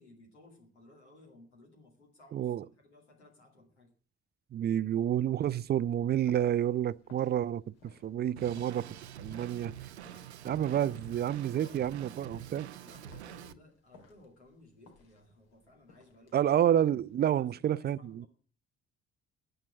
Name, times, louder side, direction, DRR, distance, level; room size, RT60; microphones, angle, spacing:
voice 1, 0.0-3.9 11.5-12.0 12.8-16.5 17.3-18.3, left 2 dB, 85° left, 2.4 m, -58 dB
voice 2, 2.3-2.6 4.5-7.7 8.0-8.9 9.2-9.7 10.4-12.7 16.3-18.3, right 10 dB, 30° right, 0.5 m, -29 dB
sound 1, 5.1-17.3, left 3 dB, 65° left, 2.1 m, -61 dB
Drum kit, 8.4-13.5, right 10 dB, 80° right, 0.6 m, -46 dB
10.5 x 7.7 x 7.5 m
figure-of-eight pair, 45°, 33 cm